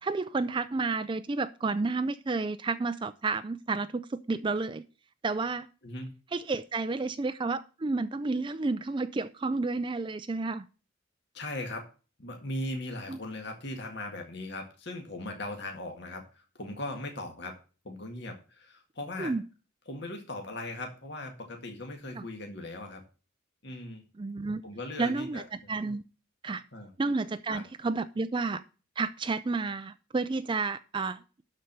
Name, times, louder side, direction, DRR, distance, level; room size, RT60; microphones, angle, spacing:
voice 1, 0.0-4.8 5.2-5.7 6.3-10.7 13.1-13.2 19.2-19.4 22.1-22.3 24.2-24.6 25.0-26.1 26.4-26.6 27.0-28.6 29.0-31.4, right 3 dB, 25° right, 0.4 m, -31 dB
voice 2, 5.8-6.1 11.3-11.8 12.2-17.5 17.8-19.3 19.9-23.0 23.6-24.0 24.6-25.7 26.7-26.9 27.5-27.6, left 1 dB, 55° left, 1.9 m, -39 dB
12.0 x 4.5 x 6.7 m
head